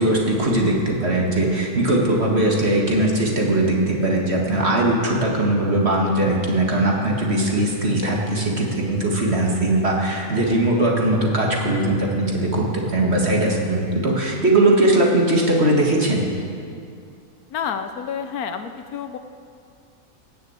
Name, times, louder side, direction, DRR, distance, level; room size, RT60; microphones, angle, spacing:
voice 1, 0.0-16.2, right 1 dB, 40° right, -1 dB, 2.1 m, -20 dB
voice 2, 17.5-19.2, left 7 dB, 70° left, 8 dB, 1.1 m, -29 dB
18.0 x 6.9 x 8.1 m, 2.4 s
omnidirectional pair, 1.7 m